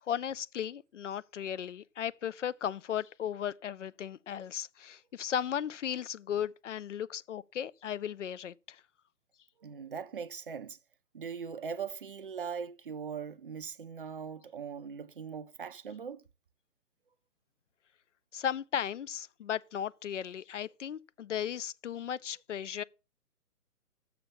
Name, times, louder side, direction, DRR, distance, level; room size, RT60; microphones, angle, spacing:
voice 1, 0.0-8.8 18.3-22.8, left 9 dB, 55° left, 0.5 m, -36 dB
voice 2, 9.6-10.8 11.1-16.2, right 6 dB, 35° right, 0.5 m, -40 dB
7.0 x 6.8 x 7.0 m
figure-of-eight pair, 145°, 46 cm